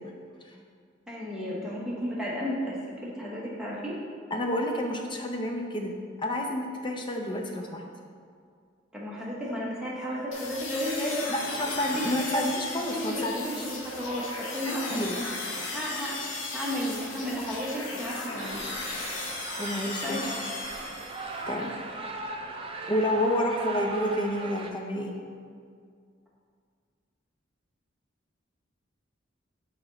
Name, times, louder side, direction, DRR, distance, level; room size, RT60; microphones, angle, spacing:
voice 1, 1.1-4.0 8.9-11.3 12.0-12.1 12.3-12.4 12.9-15.3 15.6-18.6 20.0-20.4, equal, 5° right, -6 dB, 1.1 m, -33 dB
voice 2, 4.3-5.9 6.2-7.8 11.3-13.7 14.7-15.2 19.6-20.4 21.5-21.8 22.9-25.1, left 1 dB, 25° left, 2 dB, 0.6 m, -29 dB
sound 1, 10.3-21.5, left 3 dB, 90° left, 0.9 m, -36 dB
sound 2, 18.4-24.7, right 2 dB, 30° right, 0.4 m, -38 dB
6.0 x 4.2 x 3.9 m, 2.1 s
head